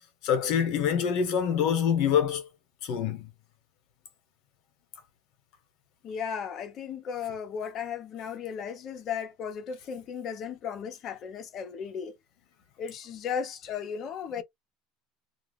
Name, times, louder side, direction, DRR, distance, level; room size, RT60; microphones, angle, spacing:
voice 1, 0.2-2.5 2.8-3.3, left 8 dB, 60° left, 1.0 m, -25 dB
voice 2, 6.0-12.2 12.8-14.4, left 7 dB, 40° left, 0.7 m, -35 dB
2.3 x 2.3 x 3.5 m
supercardioid pair, 140°, 0 cm